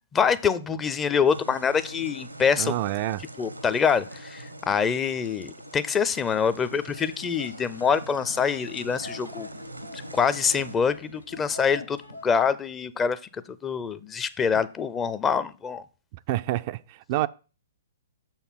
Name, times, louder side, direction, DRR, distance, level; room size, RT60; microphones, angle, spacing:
voice 1, 0.1-2.8 3.4-9.5 9.9-13.2 13.6-15.8, left 6 dB, 15° left, 0.5 m, -25 dB
sound 1, 1.3-10.8, right 1 dB, 90° right, 0.9 m, -43 dB
voice 2, 2.6-3.2 16.3-17.3, right 15 dB, 40° right, 0.3 m, -27 dB
sound 2, 6.2-12.3, left 1 dB, 90° left, 1.0 m, -44 dB
6.8 x 4.4 x 5.7 m
figure-of-eight pair, 115°, 0 cm